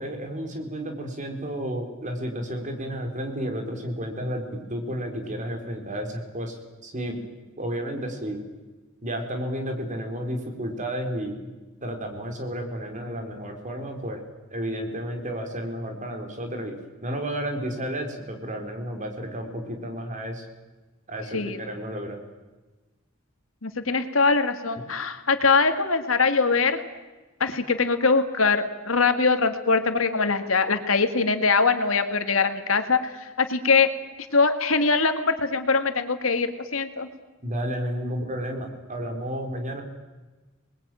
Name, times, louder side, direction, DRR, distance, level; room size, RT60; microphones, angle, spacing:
voice 1, 0.0-7.2 7.6-8.4 9.0-11.4 11.8-14.2 14.5-16.8 17.0-20.5 21.1-22.2 24.8-24.9 37.4-39.8, equal, 40° right, 4 dB, 4.1 m, -32 dB
voice 2, 23.6-26.8 27.4-33.1 33.4-33.9 34.3-37.1, left 4 dB, 80° left, 8 dB, 2.1 m, -22 dB
26.5 x 21.0 x 9.2 m, 1.2 s
head